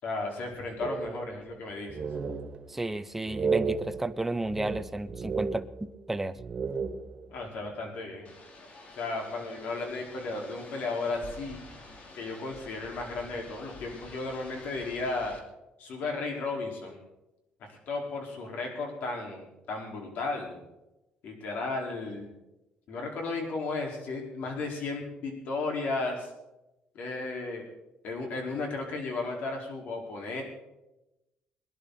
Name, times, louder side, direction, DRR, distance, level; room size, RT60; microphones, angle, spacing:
voice 1, 0.0-2.1 7.3-8.3 9.0-11.6 12.1-15.4 15.8-17.0 17.7-20.6 21.2-22.3 22.9-26.3 26.9-27.6 28.0-30.4, left 3 dB, 60° left, 1 dB, 4.8 m, -34 dB
sound 1, 0.8-1.6 1.9-2.8 3.3-6.1 6.4-7.4, right 5 dB, 30° right, 1.0 m, -34 dB
voice 2, 2.7-6.4, right 2 dB, 10° right, 11 dB, 0.7 m, -32 dB
sound 2, 8.2-15.4, left 2 dB, 45° left, 2.7 m, -49 dB
22.5 x 11.0 x 4.2 m, 0.94 s
cardioid pair, 145°, 3 cm